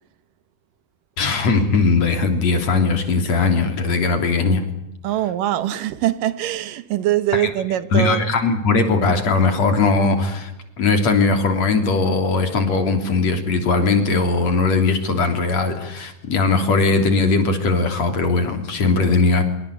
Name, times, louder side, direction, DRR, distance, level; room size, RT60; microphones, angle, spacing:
voice 1, 1.2-4.6 7.3-7.5 7.9-10.5 10.8-19.4, left 3 dB, 55° left, 4.4 m, -19 dB
voice 2, 5.0-8.3, right 13 dB, 85° right, 2.8 m, -22 dB
25.5 x 24.0 x 8.4 m
omnidirectional pair, 3.8 m